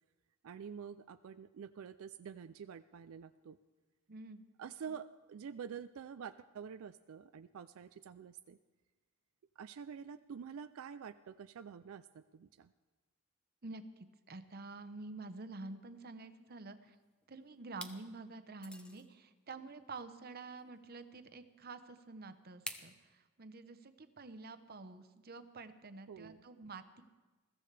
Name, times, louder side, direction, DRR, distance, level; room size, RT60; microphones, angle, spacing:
voice 1, 0.4-3.6 4.6-8.6 9.6-12.7 26.1-26.4, right 7 dB, 85° right, 11 dB, 0.4 m, -48 dB
voice 2, 4.1-4.4 13.6-17.0 17.3-27.0, right 3 dB, 50° right, 10 dB, 0.8 m, -49 dB
sound 1, 16.9-17.3 17.7-18.0 18.6-19.1 20.6-20.7 22.7-22.9, left 1 dB, 5° left, 0.8 m, -46 dB
21.0 x 14.5 x 3.3 m, 1.2 s
head